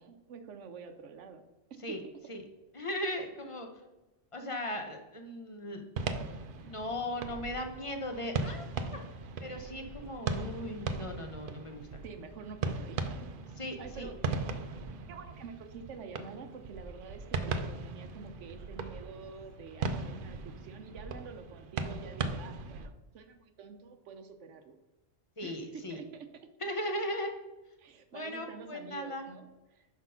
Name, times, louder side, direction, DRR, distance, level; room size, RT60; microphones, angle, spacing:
voice 1, 0.0-1.4 1.9-2.0 3.2-3.3 12.0-13.3 13.8-14.6 15.1-24.7 25.4-26.3 27.8-29.9, right 5 dB, 75° right, 7 dB, 1.0 m, -48 dB
voice 2, 2.7-3.7 4.3-5.8 6.6-8.7 9.4-12.0 13.6-14.1 25.4-26.0 26.6-27.3 28.1-29.2, left 1 dB, 30° left, 4 dB, 0.8 m, -37 dB
sound 1, 6.0-22.9, right 4 dB, 55° right, 0.7 m, -38 dB
5.9 x 5.2 x 5.6 m, 1.1 s
omnidirectional pair, 1.3 m